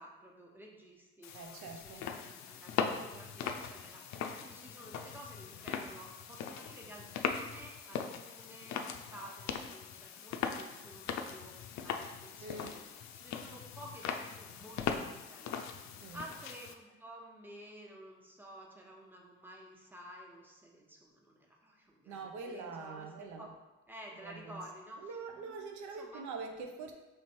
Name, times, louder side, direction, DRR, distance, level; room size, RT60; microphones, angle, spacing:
voice 1, 0.0-12.8 13.1-15.6 16.1-23.5 23.9-25.6 26.0-26.2, right 1 dB, 5° right, -1 dB, 1.0 m, -52 dB
sound 1, 1.2-16.7, left 7 dB, 65° left, 0.4 m, -40 dB
voice 2, 1.3-2.1 12.4-12.7 16.0-16.2 22.1-23.5 24.2-24.6 25.0-26.9, right 4 dB, 80° right, 4 dB, 0.6 m, -44 dB
3.2 x 2.9 x 4.5 m, 1.1 s
supercardioid pair, 45°, 29 cm